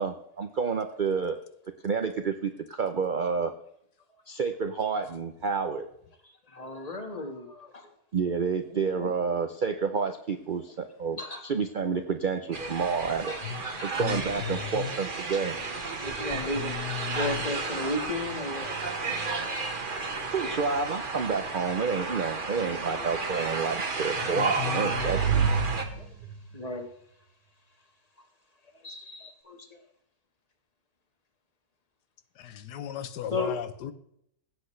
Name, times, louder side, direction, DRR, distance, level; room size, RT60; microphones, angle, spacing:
voice 1, 0.0-1.4 1.8-3.5 4.3-5.9 8.1-13.4 13.8-15.6 20.3-25.5, right 5 dB, 80° right, 0.4 m, -29 dB
voice 2, 6.5-7.9 8.7-9.1 11.2-11.4 13.3-13.4 13.7-13.9 15.3-15.4 16.0-18.7 22.9-23.1 26.0-26.1 26.5-26.9 28.8-29.8 33.3-33.5, left 2 dB, 25° left, 1.5 m, -35 dB
sound 1, 12.5-25.8, right 4 dB, 35° right, 1.2 m, -33 dB
voice 3, 14.0-14.9 16.3-17.5 24.3-25.9 32.4-33.9, left 9 dB, 80° left, 1.4 m, -36 dB
sound 2, 24.2-26.6, right 6 dB, 65° right, 1.4 m, -29 dB
17.0 x 8.0 x 3.2 m
omnidirectional pair, 1.8 m